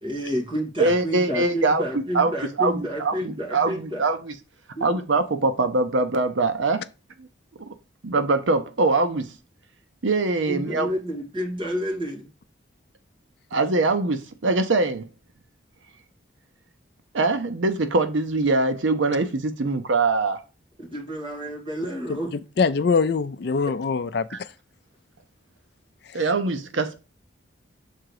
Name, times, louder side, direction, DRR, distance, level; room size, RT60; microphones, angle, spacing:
voice 1, 0.0-4.1 4.7-4.9 10.5-12.3 20.8-22.3 23.7-23.8, equal, 25° right, 2.2 m, -30 dB
voice 2, 0.8-2.3 2.6-4.3 4.8-6.8 7.2-7.3 7.7-7.8 8.0-9.3 10.0-10.9 13.5-15.1 17.1-20.4 24.3-24.4 26.1-26.9, right 3 dB, 75° right, 0.7 m, -23 dB
voice 3, 22.6-24.5 26.1-26.2, left 5 dB, 55° left, 0.4 m, -23 dB
6.5 x 3.8 x 4.7 m
head